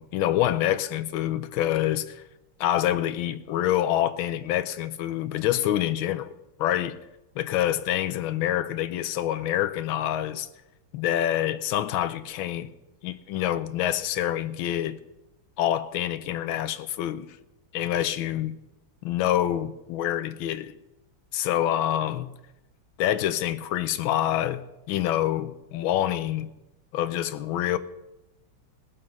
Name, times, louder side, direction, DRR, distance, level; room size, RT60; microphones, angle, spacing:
voice 1, 0.0-2.2 2.6-6.3 6.6-7.0 7.4-10.5 10.9-12.7 13.0-15.0 15.6-17.3 17.7-18.5 19.0-20.7 21.3-22.3 23.0-24.6 24.9-26.5 26.9-27.8, left 12 dB, 80° left, 1.5 m, -26 dB
19.0 x 7.7 x 5.4 m
omnidirectional pair, 2.2 m